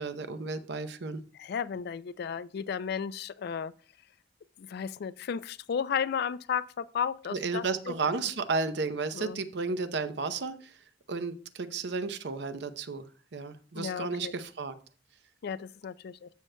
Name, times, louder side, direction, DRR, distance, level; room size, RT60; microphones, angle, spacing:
voice 1, 0.0-1.2 7.3-10.8 11.1-13.1 13.3-14.7, right 4 dB, 65° right, 0.7 m, -33 dB
voice 2, 1.4-3.7 4.6-7.9 9.1-9.4 13.7-14.3 15.4-16.3, left 7 dB, 60° left, 0.3 m, -34 dB
13.5 x 6.5 x 2.2 m
head